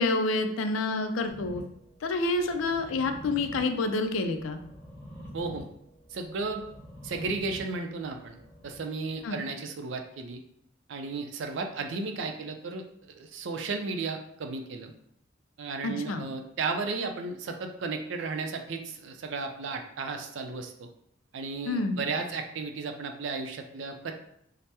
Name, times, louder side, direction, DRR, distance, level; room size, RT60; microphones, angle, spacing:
voice 1, 0.0-1.6 2.0-4.6 9.2-9.4 15.8-16.3 21.7-22.0, left 3 dB, 80° left, 7 dB, 0.4 m, -28 dB
sound 1, 1.3-9.3, equal, 25° right, 0.9 m, -47 dB
voice 2, 5.3-5.7 6.1-6.6 7.0-8.4 8.6-10.4 10.9-14.9 15.6-20.9 21.3-24.1, right 4 dB, 65° right, 5 dB, 0.4 m, -34 dB
2.8 x 2.0 x 3.3 m, 0.71 s
head